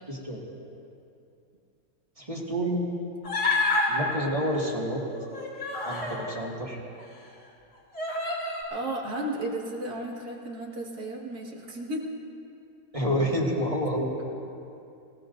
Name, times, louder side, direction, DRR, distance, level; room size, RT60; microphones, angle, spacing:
voice 1, 0.1-0.4 2.2-2.8 3.9-5.0 5.9-6.8 12.9-14.1, equal, 20° right, -3 dB, 2.0 m, -28 dB
Human voice, 3.2-3.9 5.1-6.2 7.0-7.1 7.9-8.6, left 3 dB, 60° left, 4.2 m, -28 dB
voice 2, 8.7-12.1, right 1 dB, 65° right, -2 dB, 2.5 m, -34 dB
27.0 x 17.0 x 2.6 m, 2.6 s
omnidirectional pair, 1.8 m